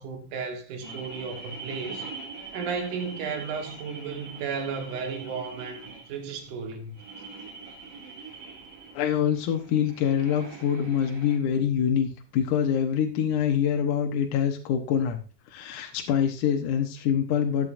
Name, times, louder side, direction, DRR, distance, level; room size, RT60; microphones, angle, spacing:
voice 1, 0.0-2.1 2.5-7.0, right 5 dB, 80° right, 3.0 m, -34 dB
sound 1, 0.8-11.4, right 4 dB, 60° right, 3.7 m, -43 dB
voice 2, 8.9-15.2 15.5-17.7, left 8 dB, 80° left, 2.5 m, -25 dB
14.0 x 9.3 x 2.6 m
omnidirectional pair, 3.6 m